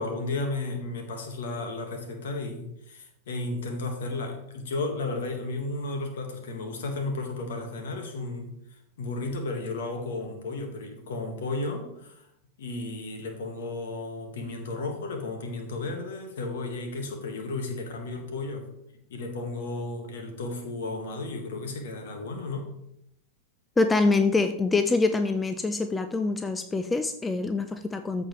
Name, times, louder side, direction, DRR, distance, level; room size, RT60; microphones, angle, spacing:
voice 1, 0.0-8.5 9.0-12.3 12.6-18.7 18.9-22.7, left 2 dB, 60° left, 5 dB, 1.7 m, -33 dB
voice 2, 23.8-28.3, left 3 dB, 10° left, 9 dB, 0.5 m, -25 dB
14.0 x 4.9 x 3.2 m, 0.78 s
figure-of-eight pair, 90°, 0 cm